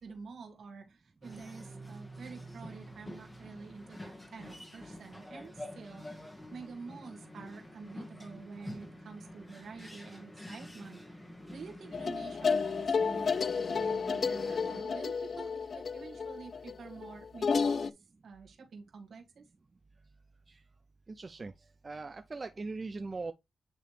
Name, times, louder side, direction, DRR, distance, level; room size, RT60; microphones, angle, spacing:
voice 1, 0.0-11.2 11.5-19.4, right 4 dB, 75° right, 1.7 m, -48 dB
sound 1, 1.2-14.8, left 1 dB, 15° left, 1.5 m, -48 dB
sound 2, 11.9-17.9, left 5 dB, 55° left, 0.4 m, -31 dB
voice 2, 21.2-21.5 21.8-23.3, right 3 dB, 40° right, 0.5 m, -39 dB
9.1 x 3.1 x 3.3 m
cardioid pair, 75°, 0 cm